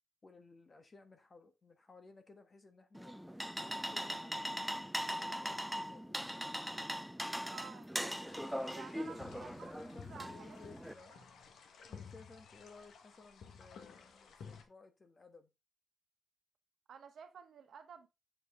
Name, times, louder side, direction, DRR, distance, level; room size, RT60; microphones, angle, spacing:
voice 1, 0.2-4.6 5.2-6.3 8.9-11.2 11.9-15.5, left 3 dB, 30° left, 1.3 m, -58 dB
sound 1, 2.9-10.9, equal, ahead, 0.4 m, -40 dB
voice 2, 7.5-7.9 8.7-9.7 10.1-10.3 16.9-18.1, right 7 dB, 65° right, 1.2 m, -52 dB
sound 2, 8.1-14.6, left 6 dB, 80° left, 1.4 m, -54 dB
7.7 x 4.9 x 3.7 m
wide cardioid pair, 135°, 0 cm